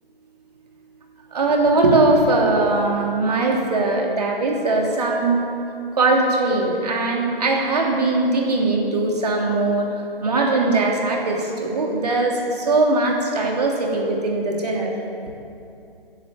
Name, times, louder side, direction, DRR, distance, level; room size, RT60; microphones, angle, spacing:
voice 1, 1.3-5.4 6.0-9.9 10.2-14.9, right 2 dB, 40° right, -1 dB, 3.1 m, -20 dB
17.5 x 10.5 x 7.7 m, 2.6 s
figure-of-eight pair, 150°, 30 cm